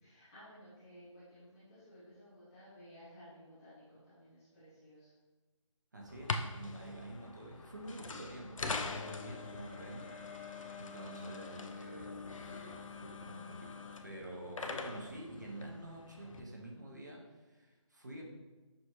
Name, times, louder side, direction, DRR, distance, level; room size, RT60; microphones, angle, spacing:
voice 1, 0.0-5.1, equal, 5° left, -13 dB, 0.6 m, -56 dB
voice 2, 5.9-18.2, right 1 dB, 35° right, -1 dB, 0.5 m, -48 dB
sound 1, 6.1-16.4, left 4 dB, 90° left, 0.5 m, -43 dB
6.2 x 2.6 x 2.9 m, 1.2 s
figure-of-eight pair, 170°, 16 cm